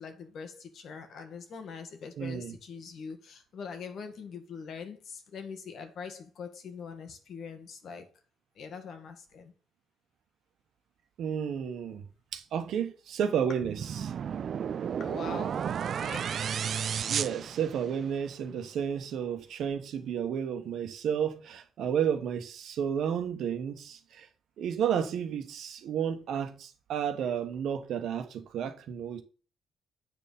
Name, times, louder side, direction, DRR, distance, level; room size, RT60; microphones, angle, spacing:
voice 1, 0.0-8.1 8.5-9.5 15.0-16.5, left 5 dB, 65° left, 1.7 m, -43 dB
voice 2, 2.2-2.6 11.2-12.0 12.3-14.1 17.1-24.3 24.6-29.2, right 8 dB, 75° right, 1.3 m, -32 dB
sound 1, 13.6-18.2, right 8 dB, 60° right, 0.3 m, -33 dB
8.1 x 4.5 x 5.4 m
cardioid pair, 90°, 0 cm